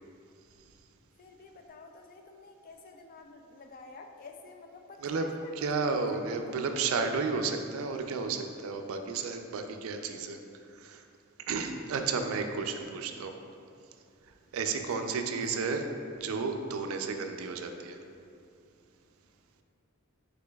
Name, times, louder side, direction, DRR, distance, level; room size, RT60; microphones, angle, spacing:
voice 1, 1.2-6.6 14.6-14.8 15.3-15.8, left 3 dB, 40° left, 4 dB, 0.3 m, -50 dB
voice 2, 5.6-10.4 10.7-11.0 11.5-13.3 14.5-15.9 16.1-18.0, right 4 dB, 80° right, 6 dB, 0.4 m, -32 dB
5.0 x 4.0 x 2.2 m, 2.5 s
head